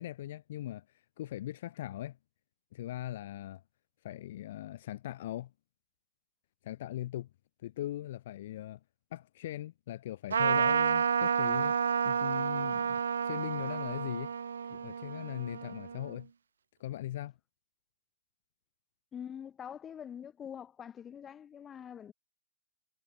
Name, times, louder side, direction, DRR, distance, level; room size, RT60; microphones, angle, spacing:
voice 1, 0.0-2.2 2.7-3.6 4.0-5.5 6.6-7.3 7.6-8.8 9.1-14.3 14.7-16.3 16.8-17.3, left 13 dB, 60° left, 0.3 m, -40 dB
Trumpet, 10.3-16.1, right 7 dB, 80° right, 0.3 m, -30 dB
voice 2, 19.1-22.1, left 8 dB, 20° left, 1.4 m, -44 dB
hypercardioid pair, 125°, 0 cm